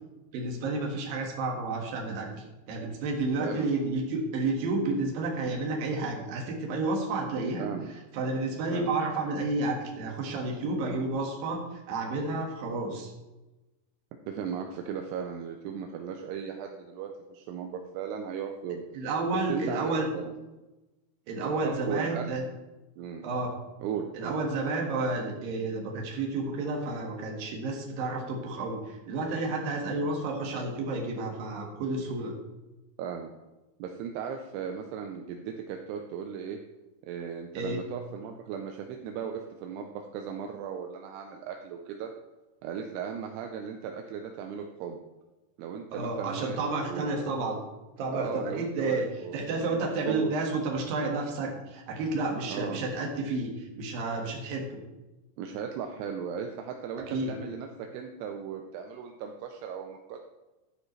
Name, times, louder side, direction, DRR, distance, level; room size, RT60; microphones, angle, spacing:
voice 1, 0.3-7.6 8.1-11.6 11.9-13.1 18.9-20.1 21.3-22.4 23.2-23.5 24.1-32.3 37.5-37.8 45.9-47.6 48.0-49.1 49.3-54.8 57.1-57.3, right 3 dB, 60° right, 0 dB, 3.0 m, -31 dB
voice 2, 3.4-3.7 7.6-7.9 8.7-8.9 14.3-18.8 19.5-20.3 21.6-22.3 23.0-23.2 23.8-24.4 33.0-33.3 33.8-36.6 37.1-42.1 42.6-45.0 45.6-46.6 46.9-47.2 48.1-50.3 52.5-52.8 55.4-60.2, right 7 dB, 80° right, 3 dB, 2.5 m, -37 dB
13.0 x 9.6 x 3.2 m, 1.1 s
omnidirectional pair, 5.3 m